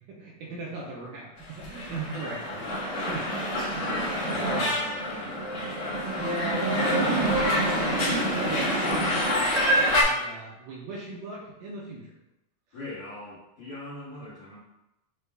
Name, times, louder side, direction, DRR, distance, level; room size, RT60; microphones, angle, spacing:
voice 1, 0.1-3.4 3.7-4.7 6.0-7.4 7.8-12.1, right 2 dB, 80° right, -3 dB, 2.0 m, -37 dB
sound 1, 1.6-10.0, equal, 85° left, 1.4 m, -26 dB
voice 2, 3.9-6.1 12.7-14.6, left 1 dB, 65° left, -10 dB, 1.7 m, -42 dB
6.4 x 2.2 x 3.4 m, 0.91 s
omnidirectional pair, 4.3 m